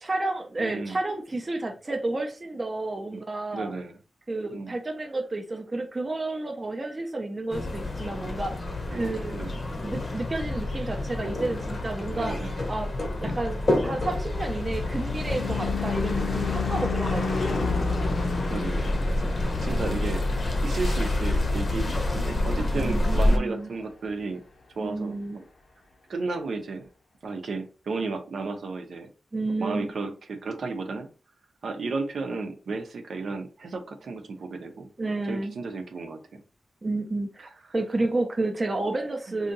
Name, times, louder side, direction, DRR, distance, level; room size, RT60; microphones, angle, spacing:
voice 1, 0.0-3.7 4.3-8.6 8.9-9.4 9.8-12.4 12.7-12.9 13.2-17.7 19.4-19.9 22.7-23.7 24.8-25.4 29.3-29.9 35.0-35.6 36.8-39.5, right 2 dB, 25° right, 0.5 m, -31 dB
voice 2, 0.6-1.0 3.1-3.2 3.5-4.0 4.5-4.7 8.9-9.5 12.1-12.5 13.2-13.4 18.5-18.9 19.2-20.3 20.6-24.4 24.8-25.4 26.1-26.9 27.2-29.1 29.6-31.1 31.6-34.9 35.3-36.4, right 3 dB, 70° right, 0.6 m, -33 dB
sound 1, 7.5-23.4, left 2 dB, 35° left, 0.7 m, -28 dB
Car passing by / Truck / Engine, 14.0-22.6, left 4 dB, 80° left, 0.8 m, -32 dB
2.8 x 2.6 x 3.9 m
wide cardioid pair, 160°, 0 cm